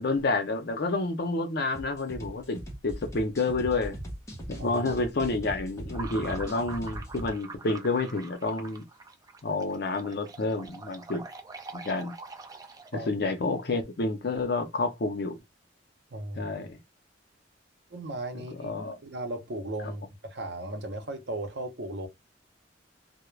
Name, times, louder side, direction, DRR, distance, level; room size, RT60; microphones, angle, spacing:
voice 1, 0.0-4.0 4.5-8.9 9.4-11.3 11.7-12.1 13.1-15.3 16.4-16.8 18.6-19.0, left 3 dB, 60° left, 0.6 m, -29 dB
sound 1, 1.7-7.3, right 1 dB, 15° left, 0.9 m, -40 dB
sound 2, 5.9-13.1, right 4 dB, 20° right, 0.4 m, -44 dB
voice 2, 16.1-16.5 17.9-18.7 19.0-22.1, right 1 dB, 65° right, 0.7 m, -36 dB
2.3 x 2.1 x 3.1 m
head